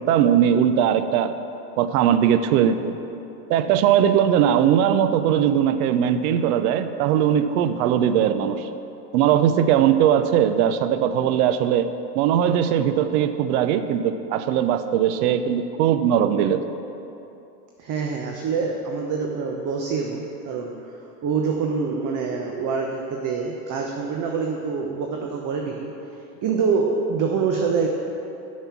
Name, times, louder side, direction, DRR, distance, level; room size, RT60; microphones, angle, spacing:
voice 1, 0.0-1.3 1.8-3.0 3.5-8.7 9.1-16.6, right 9 dB, 65° right, 11 dB, 0.7 m, -20 dB
voice 2, 17.8-20.7 21.2-25.9 26.4-27.9, right 5 dB, 40° right, 1 dB, 1.0 m, -25 dB
7.0 x 6.5 x 7.2 m, 2.9 s
hypercardioid pair, 90°, 47 cm